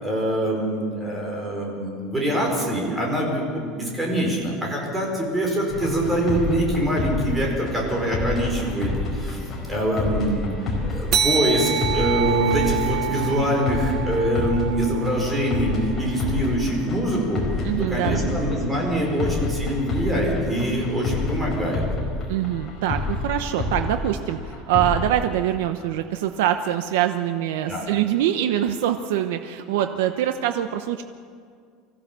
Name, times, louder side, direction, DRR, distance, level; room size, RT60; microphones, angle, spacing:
voice 1, 0.0-10.5 10.8-17.4 17.8-21.8 27.7-27.8, right 1 dB, 10° right, -1 dB, 5.1 m, -24 dB
sound 1, 5.7-25.1, left 3 dB, 20° left, 4.7 m, -29 dB
sound 2, 11.1-16.0, right 8 dB, 35° right, 1.1 m, -27 dB
voice 2, 17.6-18.4 22.3-31.0, right 11 dB, 85° right, 7 dB, 0.9 m, -24 dB
24.5 x 15.5 x 7.0 m, 2.1 s
cardioid pair, 160°, 0 cm